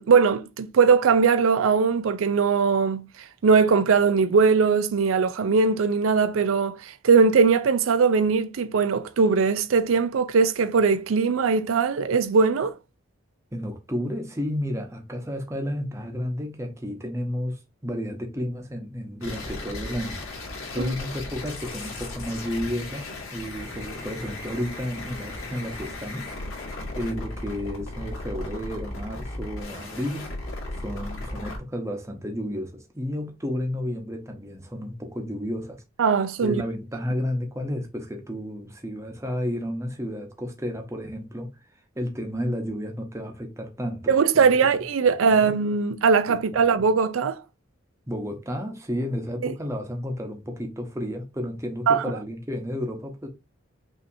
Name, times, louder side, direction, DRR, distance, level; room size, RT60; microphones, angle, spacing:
voice 1, 0.0-3.1 3.4-12.7 20.8-20.9 36.0-36.6 44.1-47.4 49.4-49.5 51.9-52.0, right 5 dB, 80° right, 0.4 m, -20 dB
voice 2, 13.5-26.3 26.9-30.3 30.8-35.8 36.4-41.5 42.0-44.5 45.3-45.5 46.3-46.8 48.1-53.3, equal, 15° right, 0.9 m, -32 dB
sound 1, 19.2-31.6, left 2 dB, 85° left, 2.0 m, -36 dB
5.6 x 2.8 x 2.6 m
head